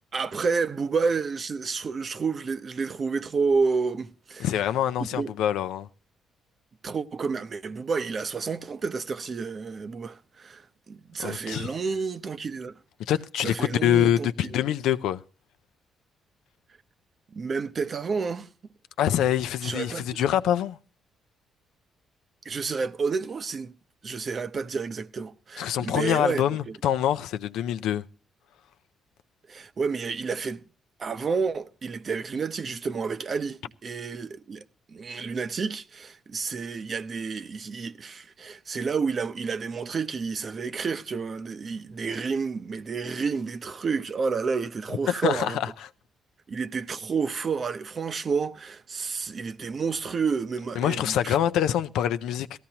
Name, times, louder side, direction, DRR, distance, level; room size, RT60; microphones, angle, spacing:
voice 1, 0.1-4.5 5.1-5.3 6.8-12.7 13.4-14.6 17.3-18.5 19.6-20.2 22.4-23.7 24.0-26.7 29.5-30.6 31.0-34.6 34.9-45.6 46.5-51.4, right 5 dB, 45° right, 0.8 m, -30 dB
voice 2, 4.4-5.9 11.2-11.7 13.0-15.2 19.0-20.8 25.6-28.0 45.1-45.7 50.8-52.7, left 11 dB, 85° left, 0.5 m, -25 dB
17.5 x 14.5 x 2.9 m
cardioid pair, 90°, 0 cm